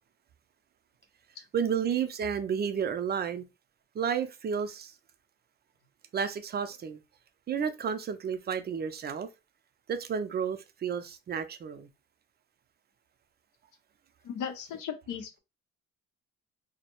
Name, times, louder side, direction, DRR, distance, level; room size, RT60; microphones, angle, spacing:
voice 1, 1.5-3.4 3.9-4.9 6.1-7.0 7.5-9.3 9.9-11.9, right 7 dB, 35° right, 0.4 m, -31 dB
voice 2, 14.2-15.4, left 7 dB, 80° left, 0.6 m, -37 dB
2.2 x 2.0 x 2.9 m
cardioid pair, 90°, 30 cm